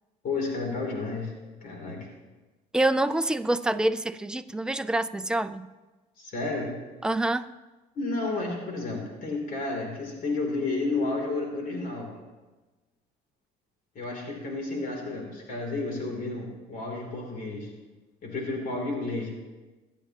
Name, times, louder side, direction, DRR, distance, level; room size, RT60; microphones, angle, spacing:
voice 1, 0.2-1.3 1.6-2.0 6.2-6.7 7.9-12.1 13.9-17.7 18.2-19.3, left 3 dB, 55° left, 0 dB, 3.2 m, -31 dB
voice 2, 2.7-5.7 7.0-7.5, right 1 dB, 5° right, 10 dB, 0.4 m, -26 dB
22.5 x 9.1 x 3.0 m, 1.2 s
cardioid pair, 110°, 17 cm